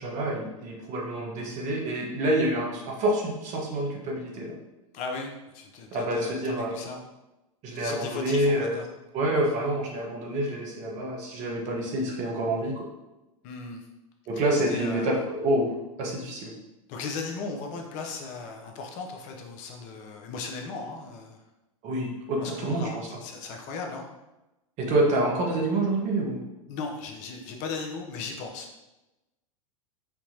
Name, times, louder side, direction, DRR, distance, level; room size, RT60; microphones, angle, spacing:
voice 1, 0.0-4.5 5.9-6.8 7.6-8.8 9.1-12.8 14.3-15.7 16.0-16.5 21.8-23.1 24.8-26.4, right 1 dB, 40° right, -1 dB, 1.1 m, -27 dB
voice 2, 4.9-7.0 7.7-8.9 13.4-13.8 14.7-15.2 16.9-21.4 22.3-24.0 26.7-28.8, left 4 dB, 45° left, 3 dB, 0.6 m, -37 dB
4.5 x 2.8 x 2.7 m, 0.99 s
hypercardioid pair, 95°, 18 cm